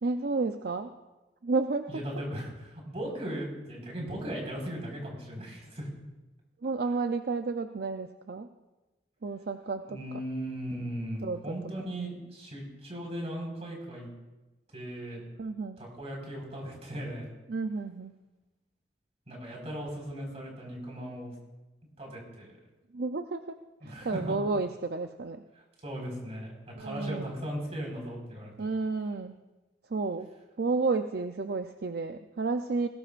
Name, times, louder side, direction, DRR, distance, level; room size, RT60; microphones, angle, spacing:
voice 1, 0.0-0.9 1.4-2.0 6.6-8.5 9.2-10.0 11.2-11.5 15.4-15.8 17.5-18.2 22.9-23.6 23.8-25.4 26.7-27.3 28.6-29.4 29.9-30.3 30.6-32.9, right 3 dB, 60° right, 7 dB, 0.5 m, -31 dB
voice 2, 1.9-5.9 9.9-14.1 14.7-15.2 15.8-17.3 19.3-21.3 22.0-22.5 23.8-24.2 25.8-28.7, equal, 40° right, -1 dB, 4.8 m, -37 dB
20.5 x 18.5 x 2.5 m, 1.1 s
head